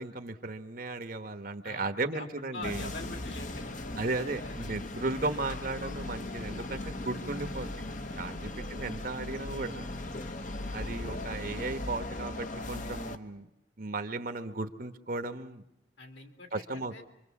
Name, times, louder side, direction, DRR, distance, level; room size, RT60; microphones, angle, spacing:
voice 1, 0.0-2.9 4.0-7.7 8.2-9.9 10.7-13.5 13.8-15.6 16.5-16.9, right 3 dB, 50° right, 9 dB, 1.2 m, -35 dB
voice 2, 1.6-2.3 2.5-3.7 4.4-4.7 8.3-8.7 16.0-17.0, left 2 dB, 60° left, 4 dB, 3.1 m, -44 dB
sound 1, 2.6-13.2, left 2 dB, 45° left, 1.2 m, -38 dB
26.5 x 24.5 x 7.2 m, 0.84 s
head